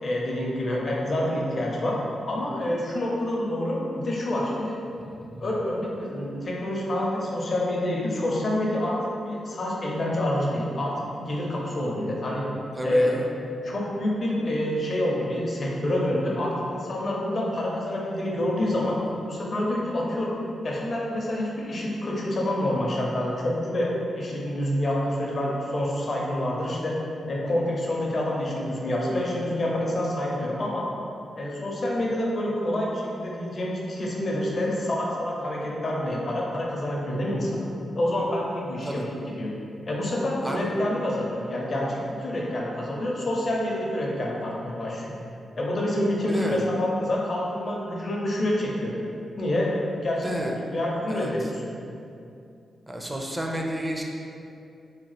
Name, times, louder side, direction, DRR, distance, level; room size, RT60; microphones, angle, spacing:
voice 1, 0.0-2.0 2.3-4.8 5.4-9.0 9.2-12.4 12.8-13.2 13.6-18.9 19.3-20.3 20.6-23.9 24.1-26.9 27.3-30.8 31.4-37.6 37.9-39.5 39.9-45.2 45.6-48.9 49.4-51.6, left 1 dB, 50° left, -3 dB, 0.6 m, -27 dB
voice 2, 5.0-5.4 12.8-13.3 38.8-39.0 40.4-40.7 46.2-46.6 50.2-50.5 51.1-51.3 52.9-54.0, right 1 dB, 15° right, 0 dB, 0.4 m, -32 dB
2.8 x 2.1 x 3.2 m, 2.6 s
cardioid pair, 60°, 0 cm